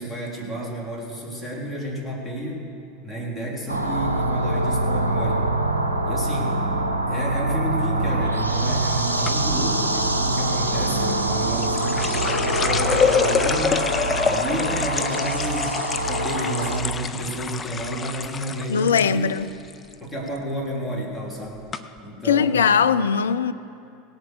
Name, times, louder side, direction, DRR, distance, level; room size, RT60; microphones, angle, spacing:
voice 1, 0.0-2.7 3.0-5.5 6.0-6.6 7.1-13.9 14.2-19.3 20.0-21.7 22.0-22.8, right 1 dB, 5° left, 3.3 m, -31 dB
sound 1, 3.7-16.8, right 1 dB, 80° right, 0.8 m, -24 dB
sound 2, 3.9-17.2, right 7 dB, 90° left, 2.2 m, -35 dB
sound 3, 9.3-9.6 11.1-19.1 19.4-19.9 20.3-20.6 21.3-21.4 21.7-21.8, left 5 dB, 20° left, 0.6 m, -26 dB
voice 2, 18.7-19.5 22.2-23.5, left 7 dB, 70° left, 0.4 m, -20 dB
17.5 x 8.0 x 6.8 m
figure-of-eight pair, 80°, 0 cm